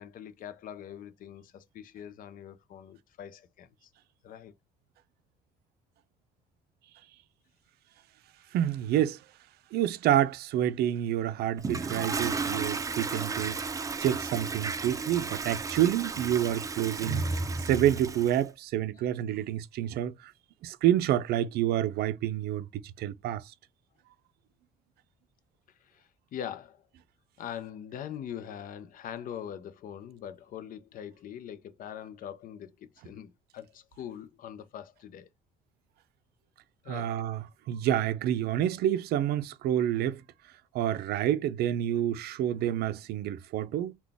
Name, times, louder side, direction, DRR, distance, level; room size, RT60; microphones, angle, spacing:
voice 1, 0.0-3.9 4.2-4.5 25.8-26.9 27.4-35.3 36.8-37.4, left 9 dB, 55° left, 0.6 m, -43 dB
voice 2, 8.5-9.2 9.7-17.2 17.6-20.3 20.6-23.5 36.9-40.2 40.7-43.9, right 11 dB, 70° right, 0.5 m, -28 dB
Toilet flush, 11.6-18.4, right 4 dB, 20° right, 0.5 m, -33 dB
3.8 x 2.3 x 3.4 m
cardioid pair, 110°, 17 cm